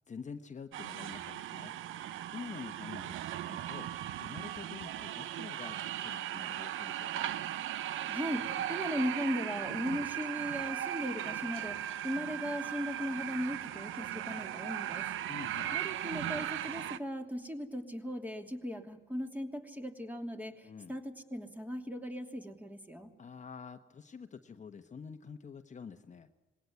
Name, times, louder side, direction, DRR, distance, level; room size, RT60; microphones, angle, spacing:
voice 1, 0.1-1.7 2.3-3.2 3.5-3.9 4.2-7.3 15.3-15.8 20.6-20.9 23.2-26.3, left 6 dB, 35° left, 7 dB, 1.2 m, -47 dB
sound 1, 0.7-17.0, right 12 dB, 80° right, 0.8 m, -38 dB
voice 2, 8.1-15.1 15.7-23.1, equal, 10° right, 4 dB, 2.8 m, -38 dB
20.5 x 17.5 x 9.4 m, 1.1 s
cardioid pair, 90°, 20 cm